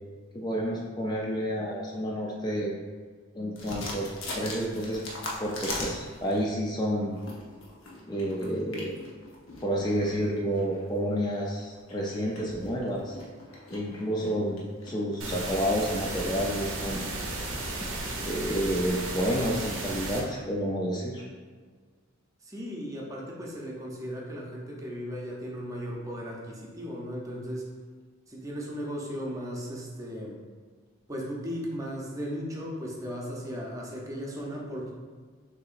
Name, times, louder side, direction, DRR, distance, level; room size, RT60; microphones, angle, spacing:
voice 1, 0.3-2.7 3.3-5.0 5.4-7.2 8.1-8.9 9.6-13.1 13.7-14.6 14.9-17.1 18.2-21.2, equal, 20° left, -2 dB, 0.4 m, -30 dB
sound 1, 3.6-6.5 7.0-15.6, left 2 dB, 80° left, 0.9 m, -41 dB
sound 2, 15.2-20.2, right 2 dB, 90° right, 0.9 m, -34 dB
voice 2, 22.4-27.7 28.3-30.4 31.1-34.9, equal, 15° right, -3 dB, 0.6 m, -36 dB
6.6 x 2.8 x 2.5 m, 1.5 s
head